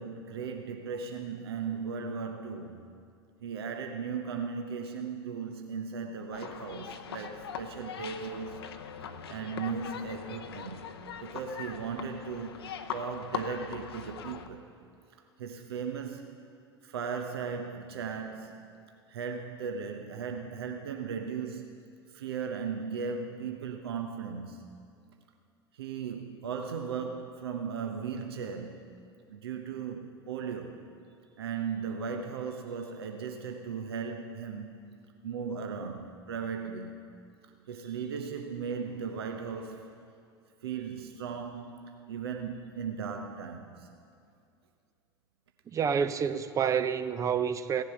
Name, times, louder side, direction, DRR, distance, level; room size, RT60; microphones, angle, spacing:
voice 1, 0.0-2.8 3.4-8.6 9.3-10.9 11.2-14.7 15.4-16.4 16.8-18.8 19.1-21.7 22.1-24.7 25.7-28.9 29.3-30.8 31.4-34.8 35.2-37.1 37.4-39.9 40.6-43.9, right 6 dB, 70° right, 0.8 m, -37 dB
sound 1, 6.3-14.5, left 7 dB, 70° left, 0.8 m, -41 dB
voice 2, 45.7-47.8, right 7 dB, 25° right, 0.5 m, -28 dB
16.5 x 10.5 x 5.7 m
figure-of-eight pair, 80°, 14 cm